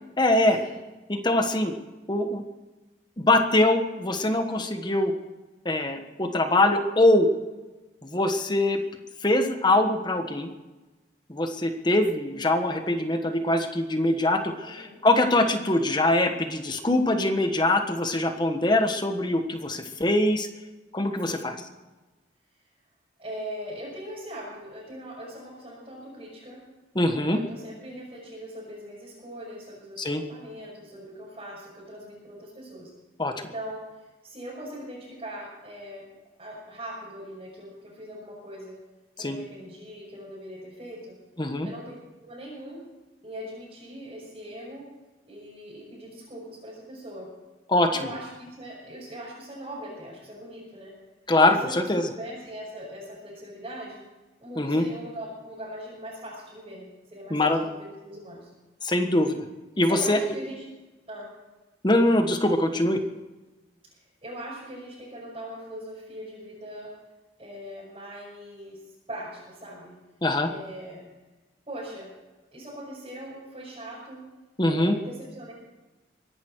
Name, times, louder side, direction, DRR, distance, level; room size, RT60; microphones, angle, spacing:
voice 1, 0.2-0.6 1.1-1.7 2.1-2.4 3.2-5.1 5.6-7.3 8.0-8.8 9.2-10.5 11.3-20.5 20.9-21.5 26.9-27.4 30.0-30.2 33.2-33.3 39.2-39.4 41.4-41.7 47.7-48.1 51.3-52.0 54.6-54.8 57.3-57.6 58.8-59.4 59.8-60.2 61.8-63.0 70.2-70.5 74.6-74.9, left 1 dB, 25° left, 6 dB, 1.4 m, -23 dB
voice 2, 14.6-15.0 21.2-21.5 23.2-26.6 27.1-32.9 33.4-33.8 34.2-36.0 36.4-38.8 39.2-41.2 41.6-41.9 42.2-42.8 43.2-44.8 45.3-47.3 47.9-50.9 51.3-54.0 54.4-58.5 59.8-60.7 61.1-61.3 64.2-66.9 67.4-68.8 69.1-69.9 70.4-71.1 71.7-72.1 72.5-74.2 74.6-75.5, equal, 30° right, -8 dB, 5.9 m, -41 dB
23.5 x 11.0 x 4.7 m, 1.1 s
head